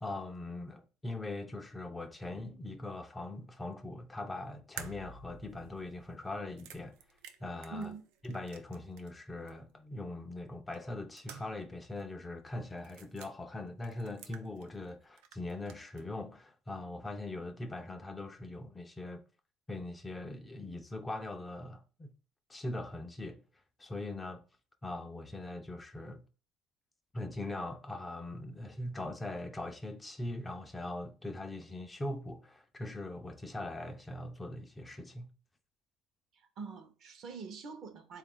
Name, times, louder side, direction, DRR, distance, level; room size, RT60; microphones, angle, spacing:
voice 1, 0.0-7.0 7.4-7.9 8.2-19.2 19.7-22.1 22.5-23.4 23.8-24.4 24.8-26.2 27.1-35.3, left 2 dB, 15° left, 0.4 m, -41 dB
sound 1, 4.8-9.2 9.5-9.6 10.7-11.7 12.0-12.1 12.8-13.3 13.8-14.9 15.2-16.1, right 7 dB, 85° right, 0.4 m, -51 dB
voice 2, 7.7-8.0 36.3-38.2, right 4 dB, 50° right, 0.7 m, -44 dB
3.6 x 2.4 x 3.6 m
cardioid pair, 125°, 0 cm